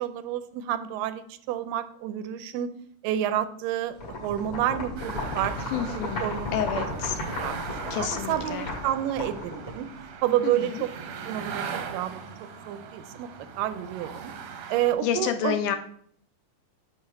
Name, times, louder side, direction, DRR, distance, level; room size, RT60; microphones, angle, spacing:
voice 1, 0.0-2.7 3.0-6.5 6.8-6.9 7.4-9.9 10.2-10.9 11.3-11.7 11.9-13.3 13.6-14.3 14.7-15.8, right 11 dB, 85° right, 12 dB, 2.2 m, -29 dB
sound 1, 4.0-10.1, left 2 dB, 55° left, 2.8 m, -34 dB
sound 2, 5.0-14.9, right 6 dB, 70° right, 1.7 m, -40 dB
voice 2, 5.7-6.2 6.5-7.2 7.9-8.7 10.4-10.7 15.0-15.8, left 9 dB, 80° left, 8 dB, 1.9 m, -29 dB
8.7 x 3.1 x 6.2 m, 0.63 s
omnidirectional pair, 3.8 m